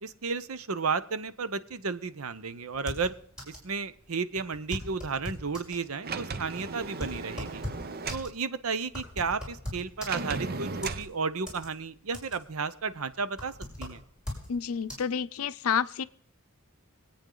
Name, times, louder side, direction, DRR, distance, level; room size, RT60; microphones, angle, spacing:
voice 1, 0.0-3.1 3.5-7.6 8.1-13.5 13.8-14.0, right 4 dB, 85° right, 14 dB, 0.8 m, -33 dB
sound 1, 2.7-3.7 4.0-4.1 4.4-5.8 6.4-10.5 10.8-11.7 12.0-12.6 12.9-14.5 14.9-15.0, left 1 dB, 5° right, 6.0 m, -39 dB
Sliding door, 6.0-8.3 10.1-11.1, right 4 dB, 45° right, 0.7 m, -36 dB
voice 2, 14.5-16.0, left 7 dB, 85° left, 14 dB, 0.5 m, -29 dB
25.0 x 8.8 x 3.9 m, 0.65 s
head